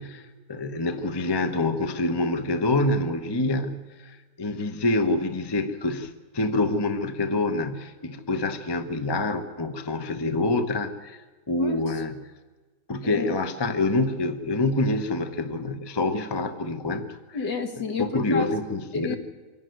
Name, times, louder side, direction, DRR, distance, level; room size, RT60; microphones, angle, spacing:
voice 1, 0.0-12.3 12.9-17.4 18.0-19.2, left 2 dB, 20° left, 8 dB, 0.7 m, -26 dB
voice 2, 17.3-18.5 18.9-19.2, left 4 dB, 65° left, 5 dB, 2.2 m, -30 dB
25.0 x 11.0 x 9.4 m, 1.3 s
omnidirectional pair, 2.1 m